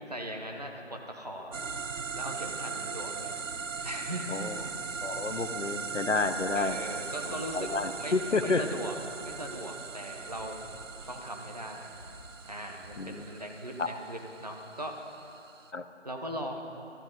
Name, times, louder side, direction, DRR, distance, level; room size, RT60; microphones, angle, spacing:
voice 1, 0.1-1.6 2.1-3.4 3.8-4.5 6.5-7.7 8.0-8.1 8.4-10.6 11.1-11.9 12.4-15.0 16.0-16.6, equal, 35° right, 2 dB, 1.1 m, -39 dB
sound 1, 1.5-15.7, right 5 dB, 90° right, 0.7 m, -39 dB
sound 2, 1.6-2.6 3.4-4.0 4.5-5.4 6.3-6.8 7.4-8.3 9.2-9.7 10.3-11.2 11.9-13.0, equal, 10° right, 1.7 m, -52 dB
voice 2, 5.0-6.8 7.2-8.7 13.0-13.2 13.8-13.9 15.7-15.9, left 3 dB, 70° left, 10 dB, 0.9 m, -30 dB
17.5 x 13.5 x 4.0 m, 2.8 s
figure-of-eight pair, 170°, 37 cm